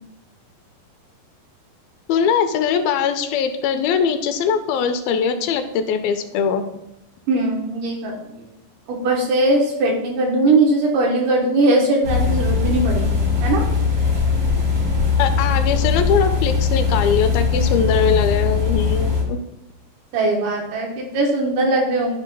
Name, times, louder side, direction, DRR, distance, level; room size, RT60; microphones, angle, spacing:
voice 1, 2.1-6.6 15.2-19.4, left 7 dB, 85° left, 8 dB, 2.4 m, -21 dB
voice 2, 7.3-8.5 8.9-13.6 20.1-22.2, right 2 dB, 70° right, 0 dB, 2.2 m, -20 dB
sound 1, 12.0-19.2, left 5 dB, 45° right, 1.3 m, -20 dB
11.5 x 5.1 x 2.3 m, 0.89 s
omnidirectional pair, 4.2 m